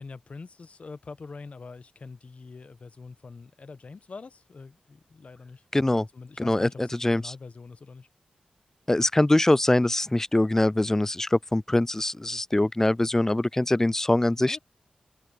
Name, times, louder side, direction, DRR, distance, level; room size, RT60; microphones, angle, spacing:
voice 1, 0.0-8.1 14.4-14.6, left 4 dB, 55° left, 1.1 m, -44 dB
voice 2, 5.7-6.1 6.4-7.3 8.9-14.6, left 1 dB, 15° left, 0.3 m, -23 dB
cardioid pair, 50°, 3 cm